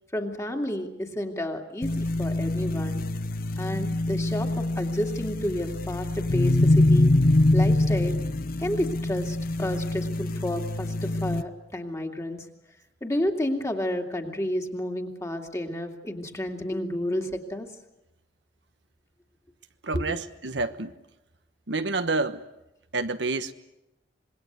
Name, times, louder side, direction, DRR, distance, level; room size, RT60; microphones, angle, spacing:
voice 1, 0.1-3.0 3.6-7.1 7.5-8.2 8.6-12.5 13.0-17.7 19.9-20.2, left 1 dB, 15° left, 2.5 m, -31 dB
sound 1, 1.8-11.4, left 2 dB, 55° left, 0.9 m, -24 dB
voice 2, 19.8-20.9 21.7-22.4 22.9-23.5, right 3 dB, 85° right, 1.2 m, -28 dB
26.5 x 21.5 x 8.2 m
head